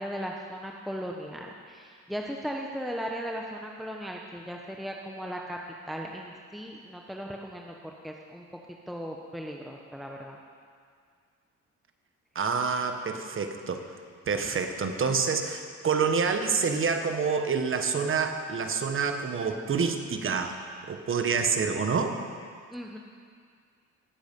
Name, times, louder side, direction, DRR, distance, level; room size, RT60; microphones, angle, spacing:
voice 1, 0.0-5.6 5.9-7.7 8.0-8.5 8.9-10.4 22.7-23.0, equal, ahead, 0 dB, 1.0 m, -37 dB
voice 2, 12.3-13.8 14.3-20.5 20.9-22.2, right 5 dB, 45° right, 6 dB, 1.3 m, -27 dB
19.0 x 8.1 x 5.4 m, 2.1 s
cardioid pair, 90°, 30 cm